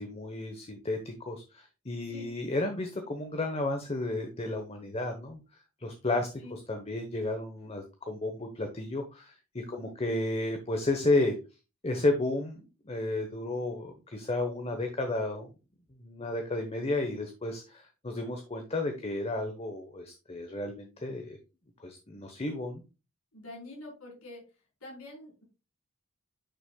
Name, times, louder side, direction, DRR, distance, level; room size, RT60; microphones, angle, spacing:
voice 1, 0.0-5.4 5.8-11.4 11.8-15.5 16.0-21.4 21.8-22.8, left 2 dB, 30° left, 5 dB, 1.0 m, -32 dB
voice 2, 23.3-24.4 24.8-25.4, left 1 dB, 80° left, -2 dB, 4.4 m, -46 dB
10.0 x 6.0 x 2.3 m, 0.29 s
head